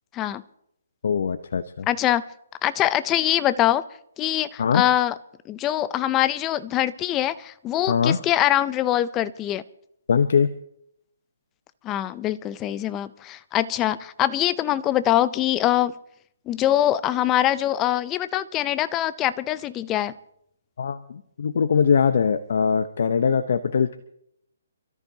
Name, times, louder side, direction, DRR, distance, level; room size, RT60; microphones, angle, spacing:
voice 1, 1.0-1.9 4.6-4.8 7.9-8.2 10.1-10.5 20.8-24.1, left 6 dB, 65° left, 10 dB, 0.8 m, -22 dB
voice 2, 1.9-2.2 2.6-3.8 4.2-5.1 5.5-9.6 11.8-15.9 16.5-20.1, left 12 dB, 20° left, 15 dB, 0.5 m, -23 dB
28.0 x 13.5 x 2.9 m, 0.73 s
hypercardioid pair, 155°, 0 cm